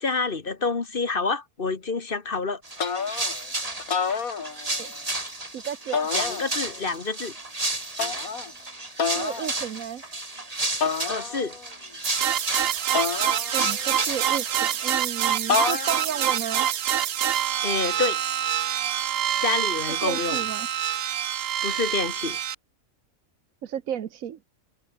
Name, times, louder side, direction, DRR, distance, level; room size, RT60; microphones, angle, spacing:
voice 1, 0.0-2.6 6.1-7.3 11.1-11.6 17.6-18.2 19.4-20.4 21.6-22.4, left 4 dB, 40° left, 1.6 m, -28 dB
sound 1, 2.6-14.9, right 2 dB, 25° right, 2.9 m, -32 dB
sound 2, 2.8-3.4 3.8-4.9 5.9-6.8 8.0-8.5 9.0-9.5 10.8-11.6 12.9-13.9 15.5-16.2, left 6 dB, 90° left, 2.3 m, -28 dB
voice 2, 5.5-6.1 9.1-10.0 13.5-16.7 20.0-20.7 23.6-24.4, right 9 dB, 70° right, 1.4 m, -33 dB
sound 3, 12.0-22.6, right 10 dB, 55° right, 0.8 m, -26 dB
omnidirectional pair, 1.5 m